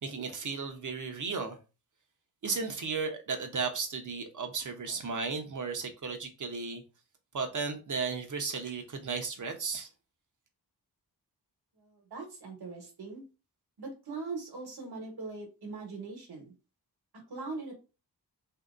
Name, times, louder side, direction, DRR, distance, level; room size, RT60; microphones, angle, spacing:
voice 1, 0.0-1.6 2.4-6.8 7.3-9.9, right 5 dB, 50° right, 0.8 m, -34 dB
voice 2, 11.8-13.2 13.8-16.5 17.1-17.7, right 3 dB, 70° right, 1.2 m, -41 dB
2.8 x 2.7 x 2.4 m
cardioid pair, 55°, 40 cm